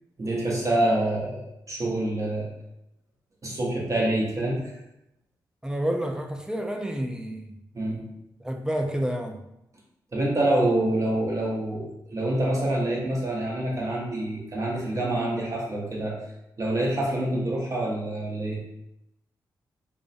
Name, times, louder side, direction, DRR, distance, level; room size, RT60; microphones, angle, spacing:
voice 1, 0.2-2.5 3.4-4.6 7.7-8.0 10.1-16.1 16.6-18.6, right 1 dB, 40° right, -4 dB, 0.8 m, -26 dB
voice 2, 5.6-7.5 8.4-9.4, equal, 10° right, 4 dB, 0.3 m, -29 dB
2.4 x 2.0 x 2.6 m, 0.85 s
supercardioid pair, 55°, 8 cm